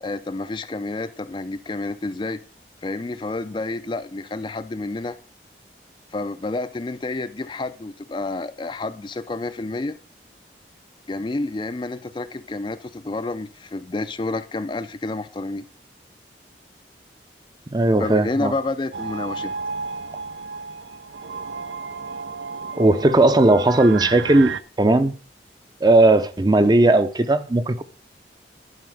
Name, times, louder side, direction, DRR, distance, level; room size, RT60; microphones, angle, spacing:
voice 1, 0.0-2.4 2.8-5.2 6.1-10.0 11.1-15.6 18.0-19.5, left 2 dB, 25° left, 0.4 m, -29 dB
voice 2, 17.7-18.5 22.8-25.1 25.8-27.8, right 2 dB, 25° right, 0.5 m, -17 dB
sound 1, 18.9-24.6, right 5 dB, 90° right, 0.6 m, -33 dB
11.0 x 4.8 x 6.3 m
head